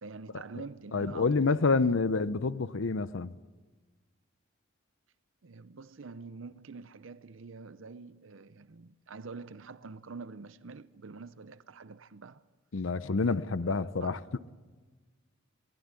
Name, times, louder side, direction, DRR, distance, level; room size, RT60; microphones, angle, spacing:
voice 1, 0.0-1.5 5.4-12.4 13.2-13.4 13.7-14.2, right 4 dB, 70° right, 0.6 m, -46 dB
voice 2, 0.9-3.3 12.7-14.2, left 4 dB, 70° left, 0.6 m, -28 dB
23.0 x 19.5 x 9.7 m
head